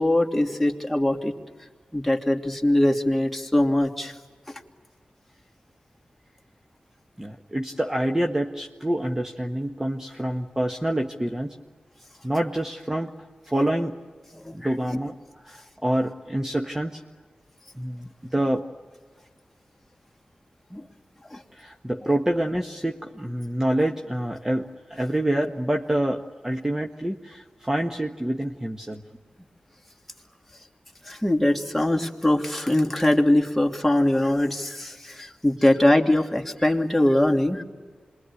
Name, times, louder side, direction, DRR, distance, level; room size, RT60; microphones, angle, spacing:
voice 1, 0.0-1.3 1.9-4.1 4.5-4.6 14.4-14.7 20.7-20.8 21.3-21.4 22.0-22.1 31.0-37.6, left 1 dB, 5° left, 1 dB, 2.9 m, -22 dB
voice 2, 7.2-11.6 12.2-14.0 14.5-17.0 17.8-18.7 21.5-29.0, right 1 dB, 15° right, 3 dB, 1.4 m, -27 dB
27.0 x 22.5 x 9.9 m, 1.5 s
cardioid pair, 45°, 3 cm